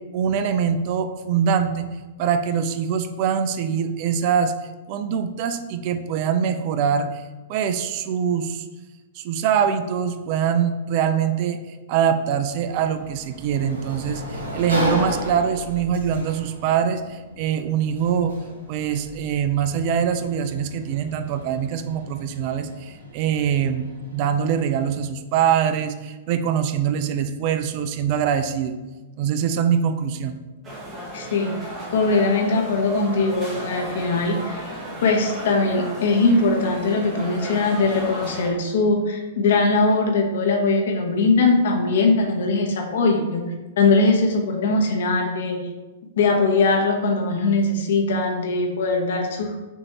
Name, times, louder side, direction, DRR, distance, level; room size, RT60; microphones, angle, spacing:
voice 1, 0.1-1.9 2.2-4.6 4.9-7.2 7.5-8.7 9.2-11.6 11.9-18.3 18.7-23.9 24.1-28.8 29.2-30.4, right 8 dB, 45° right, 9 dB, 0.3 m, -23 dB
Sliding door, 12.4-25.0, equal, 80° right, 1.2 m, -34 dB
sound 1, 30.6-38.5, right 1 dB, 25° right, 1.2 m, -34 dB
voice 2, 31.1-34.6 35.0-43.4 43.8-45.6 46.2-49.7, left 3 dB, 60° left, 2 dB, 0.8 m, -21 dB
6.2 x 2.7 x 2.8 m, 1.2 s
figure-of-eight pair, 105°, 0 cm